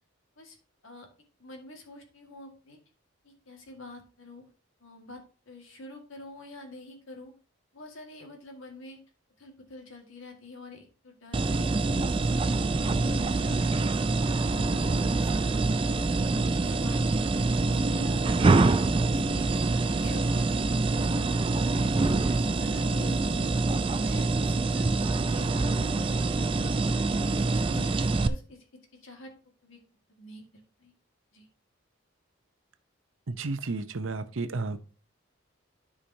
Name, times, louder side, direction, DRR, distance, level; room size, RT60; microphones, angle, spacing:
voice 1, 1.4-2.8 3.2-4.4 4.8-7.3 7.7-9.0 9.4-14.0 14.4-15.8 16.4-17.3 17.7-20.8 21.2-23.5 23.9-26.1 26.5-26.8 27.0-28.7 29.0-29.3 29.6-29.8 30.2-30.5 30.8-30.9 31.3-31.5, left 2 dB, 75° left, 3 dB, 1.9 m, -47 dB
sound 1, 11.3-28.3, right 3 dB, 25° right, 0.4 m, -25 dB
voice 2, 33.3-34.8, right 3 dB, 75° right, 11 dB, 0.7 m, -32 dB
13.0 x 5.0 x 2.8 m, 0.38 s
head